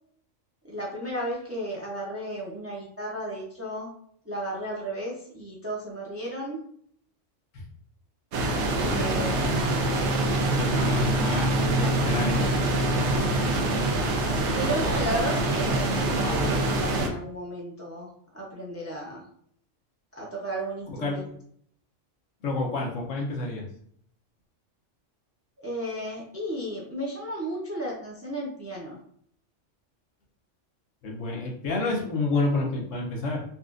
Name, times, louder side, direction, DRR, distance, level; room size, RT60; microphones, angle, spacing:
voice 1, 0.7-3.9 4.3-6.6 8.8-9.6 10.8-11.3 14.5-19.2 20.1-21.3 25.6-29.0, right 1 dB, 15° right, -3 dB, 0.5 m, -34 dB
sound 1, 8.3-17.1, right 2 dB, 70° right, 0.9 m, -25 dB
voice 2, 10.5-12.5 20.9-21.3 22.4-23.7 31.0-33.4, left 2 dB, 90° left, 0 dB, 1.2 m, -29 dB
4.1 x 2.4 x 2.5 m, 0.64 s
omnidirectional pair, 1.3 m